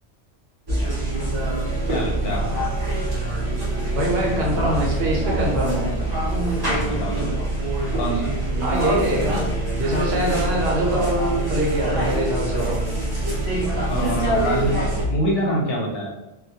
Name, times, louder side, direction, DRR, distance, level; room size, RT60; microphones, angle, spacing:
sound 1, 0.7-15.0, right 1 dB, 35° right, 0.4 m, -24 dB
voice 1, 1.9-2.4 6.7-7.3 8.0-8.3 13.9-16.1, equal, 65° left, -2 dB, 0.7 m, -25 dB
voice 2, 4.0-5.9 8.6-9.5 9.8-12.8, right 1 dB, 65° right, -3 dB, 0.8 m, -23 dB
2.2 x 2.1 x 2.7 m, 0.99 s
omnidirectional pair, 1.2 m